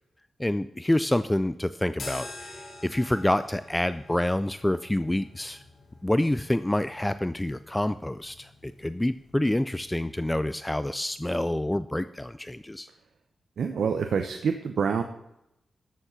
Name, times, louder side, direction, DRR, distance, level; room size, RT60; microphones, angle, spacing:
voice 1, 0.4-5.6 6.0-12.9, left 1 dB, 10° left, 13 dB, 0.3 m, -27 dB
sound 1, 1.9-10.4, left 2 dB, 60° left, 3.3 m, -47 dB
voice 2, 13.6-15.0, right 6 dB, 75° right, 6 dB, 0.8 m, -26 dB
13.0 x 7.3 x 5.8 m, 0.85 s
wide cardioid pair, 135°, 0 cm